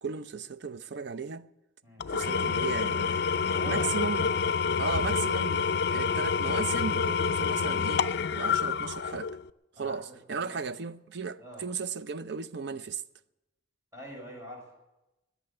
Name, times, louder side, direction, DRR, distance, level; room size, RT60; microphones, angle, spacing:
voice 1, 0.0-1.5 2.1-3.2 3.6-4.3 4.8-8.0 8.3-9.4 9.8-13.0, right 5 dB, 65° right, 0.6 m, -35 dB
Engine / Tools, 2.0-9.5, left 6 dB, 60° left, 0.5 m, -28 dB
voice 2, 3.3-4.0 9.8-10.6 11.4-11.7 13.9-14.7, equal, 15° right, 5.5 m, -44 dB
20.5 x 7.1 x 9.9 m
head